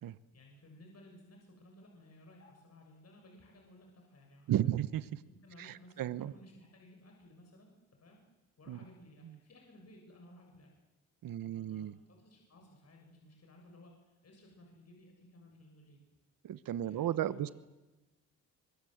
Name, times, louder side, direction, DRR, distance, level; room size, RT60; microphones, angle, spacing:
voice 1, 0.3-4.8 5.3-7.7 8.0-8.2 8.6-10.7 11.4-16.0 16.8-17.5, left 1 dB, 45° left, 1 dB, 7.1 m, -58 dB
voice 2, 4.5-5.0 5.6-6.3 8.7-8.8 11.2-11.9 16.4-17.5, right 12 dB, 70° right, 15 dB, 1.2 m, -34 dB
24.5 x 23.0 x 8.1 m, 1.1 s
cardioid pair, 85°, 35 cm